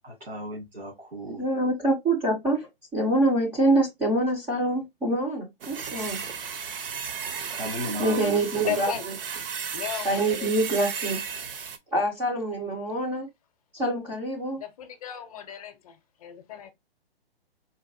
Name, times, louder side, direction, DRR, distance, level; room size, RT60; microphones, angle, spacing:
voice 1, 0.0-1.4 7.5-8.8, right 1 dB, 85° right, 1.8 m, -35 dB
voice 2, 1.4-6.2 8.0-8.9 10.0-11.2 11.9-13.3 13.7-14.6, right 1 dB, 5° right, 0.3 m, -25 dB
sound 1, 5.6-11.8, right 6 dB, 65° right, 0.7 m, -34 dB
voice 3, 8.6-9.0 9.7-10.5 14.6-16.7, left 10 dB, 40° left, 0.6 m, -35 dB
3.9 x 2.5 x 2.5 m
figure-of-eight pair, 130°, 30 cm